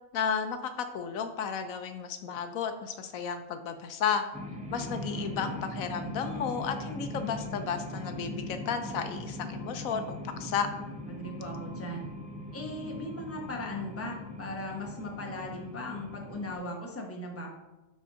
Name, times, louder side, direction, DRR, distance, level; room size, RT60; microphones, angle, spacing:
voice 1, 0.1-4.2 4.7-10.7, left 7 dB, 75° left, 8 dB, 1.0 m, -33 dB
sound 1, 4.3-16.5, left 1 dB, 10° right, 0.3 m, -40 dB
voice 2, 4.8-5.5 11.1-12.1 12.5-17.5, left 1 dB, 10° left, 0 dB, 0.9 m, -38 dB
9.3 x 4.3 x 3.7 m, 1.1 s
omnidirectional pair, 1.5 m